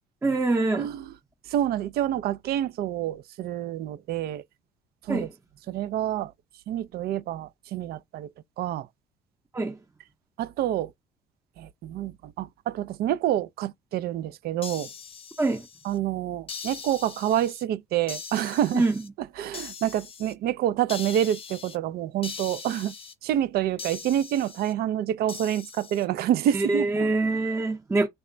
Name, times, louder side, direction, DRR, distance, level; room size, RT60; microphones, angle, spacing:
voice 1, 0.2-0.9 5.1-5.3 9.5-9.8 15.4-15.7 18.7-18.9 26.5-28.1, right 2 dB, 15° right, 0.7 m, -24 dB
voice 2, 1.5-4.4 5.1-5.3 5.7-6.3 6.7-8.3 8.6-8.9 10.4-10.9 11.6-14.9 15.8-18.8 19.4-22.9 23.2-26.9, right 11 dB, 65° right, 0.4 m, -27 dB
sound 1, 14.6-16.0 16.5-17.6 18.1-19.1 19.5-20.3 20.9-21.8 22.2-23.1 23.8-24.7 25.3-26.1, left 6 dB, 35° left, 0.6 m, -41 dB
3.4 x 2.1 x 3.7 m
cardioid pair, 110°, 17 cm